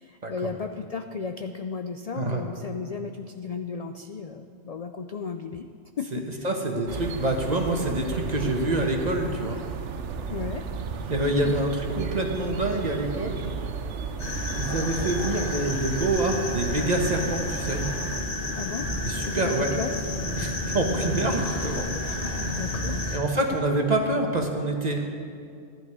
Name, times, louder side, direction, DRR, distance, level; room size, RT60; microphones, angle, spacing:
voice 1, 0.0-5.7 6.0-6.5 10.3-10.6 11.4-11.6 18.6-18.9 19.2-19.9 22.0-23.0, left 5 dB, 70° left, 6 dB, 0.3 m, -34 dB
voice 2, 6.1-9.6 11.1-13.5 14.5-17.8 19.0-19.7 20.4-21.9 23.1-25.1, right 2 dB, 35° right, 2 dB, 1.3 m, -26 dB
sound 1, 6.9-18.2, right 6 dB, 75° right, 1.1 m, -34 dB
sound 2, 14.2-23.2, left 2 dB, 50° left, 1.9 m, -31 dB
15.0 x 11.0 x 4.8 m, 2.3 s
omnidirectional pair, 1.3 m